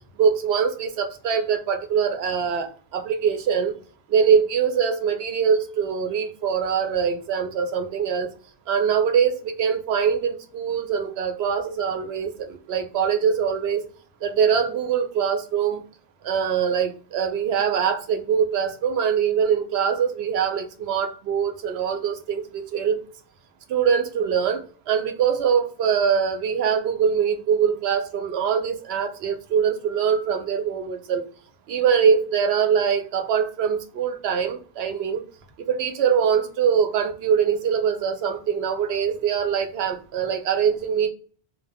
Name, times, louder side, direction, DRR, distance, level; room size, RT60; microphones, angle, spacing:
voice 1, 0.2-3.7 4.1-8.3 8.7-13.8 14.2-15.8 16.2-23.0 23.7-31.2 31.7-35.2 35.6-41.1, right 7 dB, 70° right, 6 dB, 0.8 m, -23 dB
2.1 x 2.0 x 3.3 m, 0.41 s
omnidirectional pair, 1.1 m